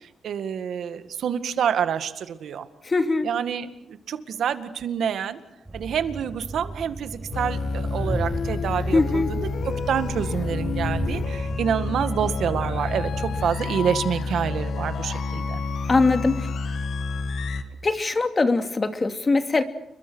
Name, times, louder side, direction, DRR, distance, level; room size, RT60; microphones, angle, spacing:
voice 1, 0.0-2.7 3.2-5.4 5.7-15.6, right 8 dB, 80° right, 10 dB, 2.0 m, -27 dB
voice 2, 2.8-3.3 8.9-9.3 15.9-16.5 17.8-19.6, left 3 dB, 35° left, 8 dB, 2.6 m, -21 dB
Train, 5.7-13.5, right 2 dB, 15° right, 5.0 m, -35 dB
sound 1, 7.3-17.6, left 4 dB, 70° left, 2.1 m, -29 dB
29.5 x 23.0 x 6.4 m, 0.86 s
cardioid pair, 85°, 0 cm